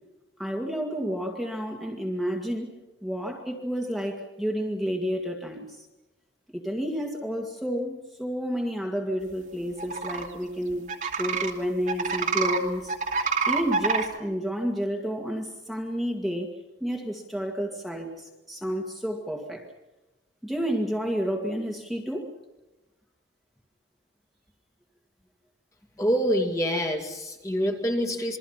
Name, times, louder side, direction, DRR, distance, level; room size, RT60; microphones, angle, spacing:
voice 1, 0.4-2.7 3.0-5.9 6.5-10.9 11.2-12.9 13.5-16.5 16.8-19.7 20.4-22.3, equal, ahead, 0 dB, 2.1 m, -30 dB
sound 1, 9.8-10.3 10.9-11.5 11.9-12.6 12.9-14.1, right 4 dB, 45° right, 2.5 m, -26 dB
voice 2, 26.0-28.4, equal, 15° left, 3 dB, 2.4 m, -26 dB
27.5 x 22.5 x 5.8 m, 1.0 s
head